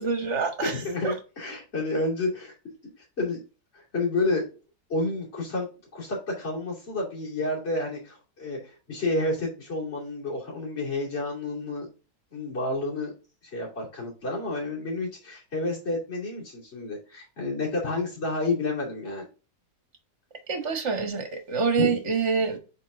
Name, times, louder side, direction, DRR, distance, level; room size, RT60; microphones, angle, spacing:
voice 1, 0.0-1.2 20.5-22.6, right 5 dB, 45° right, 1.6 m, -26 dB
voice 2, 0.6-2.5 3.2-3.4 3.7-4.5 4.9-5.7 5.9-11.9 12.3-13.1 13.5-19.3 21.8-21.9, left 2 dB, 40° left, 3.0 m, -30 dB
8.3 x 3.8 x 3.6 m
omnidirectional pair, 1.7 m